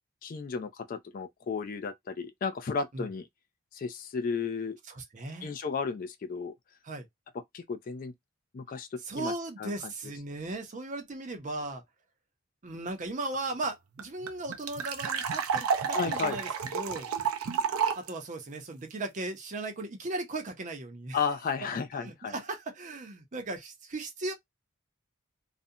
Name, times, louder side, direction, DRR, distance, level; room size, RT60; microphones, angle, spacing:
voice 1, 0.2-3.3 3.7-4.8 5.4-6.5 7.5-8.1 8.5-9.3 9.6-9.7 15.9-16.4 21.1-22.3, left 5 dB, 40° left, 0.3 m, -33 dB
voice 2, 4.9-5.5 6.8-7.1 9.0-11.8 12.6-16.5 16.7-17.1 18.0-21.2 22.0-24.3, right 2 dB, 35° right, 0.5 m, -37 dB
sound 1, 13.3-13.4 13.6-13.7 14.0-18.1, right 6 dB, 85° right, 0.5 m, -30 dB
2.5 x 2.1 x 2.6 m
head